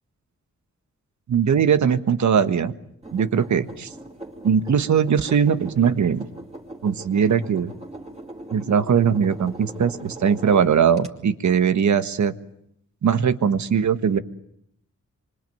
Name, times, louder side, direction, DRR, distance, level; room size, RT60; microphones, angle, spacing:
voice 1, 1.3-2.7 3.1-3.9 4.4-6.2 6.8-7.7 8.5-12.3 13.0-14.2, right 7 dB, 80° right, 11 dB, 1.5 m, -20 dB
sound 1, 3.0-11.1, right 2 dB, 20° right, 4.7 m, -40 dB
25.5 x 25.0 x 9.3 m, 0.73 s
wide cardioid pair, 95°, 29 cm